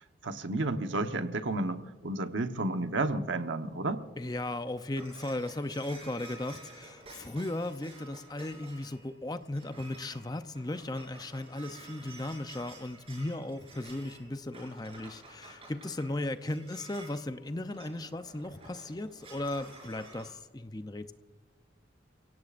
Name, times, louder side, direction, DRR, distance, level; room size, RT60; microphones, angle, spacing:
voice 1, 0.2-4.0, right 2 dB, 85° right, 7 dB, 1.1 m, -31 dB
voice 2, 4.2-21.1, left 1 dB, 20° left, 10 dB, 0.6 m, -36 dB
sound 1, 4.6-20.3, right 2 dB, 30° right, 5.8 m, -51 dB
30.0 x 17.0 x 2.5 m, 1.4 s
head